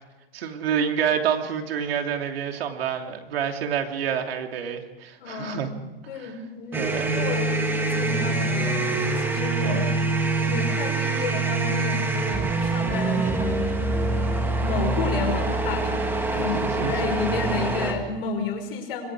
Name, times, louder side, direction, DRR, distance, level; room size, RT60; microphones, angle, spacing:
voice 1, 0.3-5.7 6.1-6.3 6.8-7.2 9.6-9.9 16.4-16.9, right 8 dB, 85° right, 4 dB, 3.1 m, -28 dB
voice 2, 5.2-5.7 6.1-8.8 9.2-9.9 10.4-14.3 14.6-19.1, left 4 dB, 70° left, 5 dB, 5.7 m, -32 dB
sound 1, 6.7-17.9, right 3 dB, 5° right, 1.9 m, -25 dB
25.5 x 22.5 x 4.9 m, 1.1 s
supercardioid pair, 165°, 29 cm